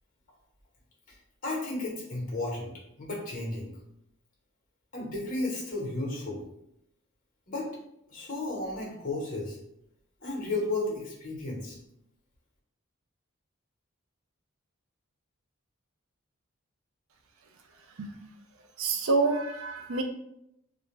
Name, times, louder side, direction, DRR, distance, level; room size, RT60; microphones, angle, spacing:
voice 1, 1.4-2.7 3.0-3.7 4.9-6.4 7.5-7.7 8.1-9.6 10.2-11.8, left 2 dB, 40° left, -2 dB, 0.9 m, -33 dB
voice 2, 18.8-20.0, right 3 dB, 85° right, 5 dB, 0.4 m, -27 dB
2.4 x 2.2 x 3.1 m, 0.80 s
head